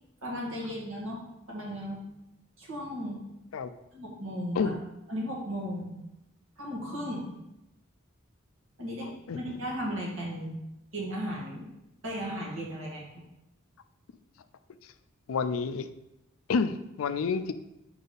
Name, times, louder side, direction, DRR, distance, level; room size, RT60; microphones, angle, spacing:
voice 1, 0.2-1.2 1.5-2.0 2.6-3.2 3.9-4.7 5.1-6.0 6.6-7.3 8.8-10.6 10.9-11.7 12.0-13.1, equal, 70° right, -3 dB, 1.9 m, -35 dB
voice 2, 9.0-9.4 14.8-14.9 15.3-15.9 16.5-17.5, left 5 dB, 80° left, 11 dB, 0.4 m, -29 dB
4.8 x 4.1 x 5.2 m, 0.89 s
head